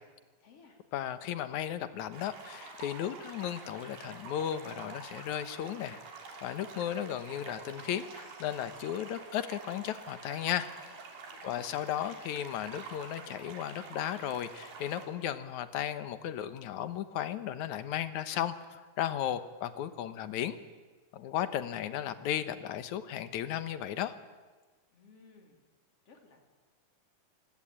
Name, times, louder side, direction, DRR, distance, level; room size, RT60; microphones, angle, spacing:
voice 1, 0.4-0.8 11.3-11.7 24.9-25.6 26.1-26.4, left 3 dB, 40° left, 3 dB, 4.4 m, -57 dB
voice 2, 0.9-6.0 6.4-10.7 11.4-20.6 21.1-24.1, left 10 dB, 65° left, 12 dB, 2.1 m, -35 dB
sound 1, 2.1-15.1, right 4 dB, 80° right, 5.2 m, -47 dB
28.5 x 20.5 x 8.9 m, 1.3 s
omnidirectional pair, 4.4 m